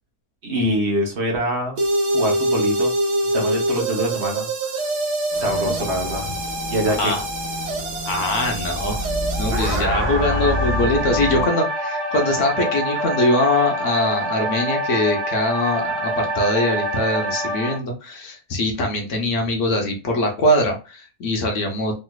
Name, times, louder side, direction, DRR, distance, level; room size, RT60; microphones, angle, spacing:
voice 1, 0.4-1.8 2.1-2.9 3.3-4.5 4.8-4.9 5.4-6.4 6.7-7.1, equal, 50° right, 1 dB, 1.0 m, -24 dB
sound 1, 1.8-17.8, right 1 dB, 75° right, 1.3 m, -25 dB
sound 2, 5.3-11.4, equal, 20° right, 1.1 m, -29 dB
voice 2, 8.1-9.0 9.4-21.9, left 1 dB, 60° left, 2 dB, 0.9 m, -22 dB
3.2 x 3.0 x 2.2 m, 0.32 s
omnidirectional pair, 1.8 m